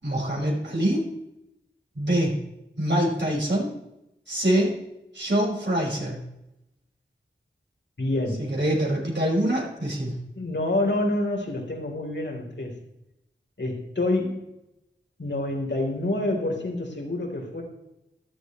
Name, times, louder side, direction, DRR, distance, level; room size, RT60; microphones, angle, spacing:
voice 1, 0.0-1.1 1.9-2.4 2.8-3.7 4.3-4.8 5.1-6.2 8.4-10.1, right 1 dB, 65° right, -4 dB, 5.7 m, -24 dB
voice 2, 8.0-8.5 10.4-12.8 13.6-14.4 15.2-17.6, left 2 dB, 65° left, 0 dB, 3.7 m, -27 dB
14.0 x 12.5 x 3.2 m, 0.87 s
wide cardioid pair, 55°, 20 cm